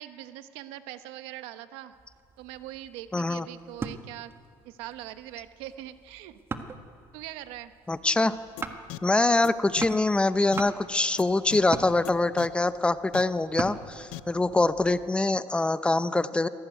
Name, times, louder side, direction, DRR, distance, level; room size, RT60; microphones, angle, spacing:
voice 1, 0.0-2.0 2.4-4.3 4.6-6.4 7.1-7.7 13.9-14.1, right 13 dB, 85° right, 10 dB, 1.2 m, -42 dB
sound 1, 1.9-15.1, right 4 dB, 25° right, 1.5 m, -42 dB
voice 2, 3.1-3.5 7.9-8.3 9.0-16.5, left 2 dB, 10° left, 13 dB, 0.8 m, -24 dB
sound 2, 8.6-8.7 8.9-9.0 9.4-9.5 9.8-9.9 10.5-10.6 11.2-11.3 11.5-11.6 12.0-12.1 12.4-12.5 13.1-13.2 14.1-14.2, left 21 dB, 85° left, 0.7 m, -37 dB
24.0 x 18.0 x 9.3 m, 2.2 s
cardioid pair, 120°, 9 cm